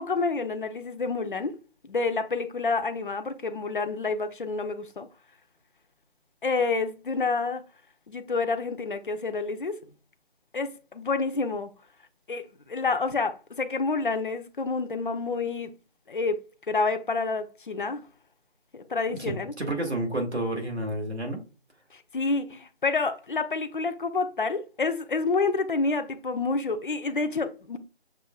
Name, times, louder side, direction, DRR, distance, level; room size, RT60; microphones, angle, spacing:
voice 1, 0.0-1.5 1.8-5.1 6.4-7.6 8.1-9.8 10.5-11.7 12.3-15.7 16.1-16.4 16.7-18.0 18.7-19.5 21.9-27.8, left 4 dB, 50° left, 0.6 m, -28 dB
voice 2, 19.2-21.4, right 1 dB, 90° right, 2.0 m, -30 dB
6.8 x 2.7 x 2.3 m
figure-of-eight pair, 165°, 32 cm